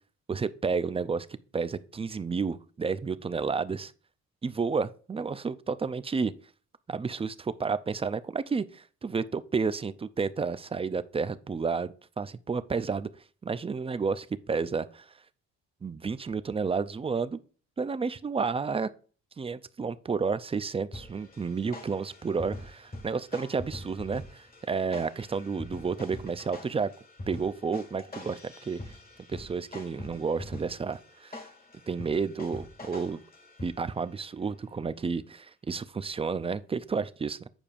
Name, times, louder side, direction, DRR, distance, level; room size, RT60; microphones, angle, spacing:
voice 1, 0.3-1.3 1.5-3.9 4.4-6.3 6.9-13.1 13.4-15.1 15.8-17.4 17.8-18.9 19.4-26.9 27.3-28.8 29.3-31.4 31.9-33.2 33.6-37.5, right 5 dB, 20° right, 0.4 m, -31 dB
sound 1, 20.9-34.1, left 1 dB, 30° left, 1.7 m, -44 dB
8.9 x 5.0 x 2.5 m
cardioid pair, 90°, 30 cm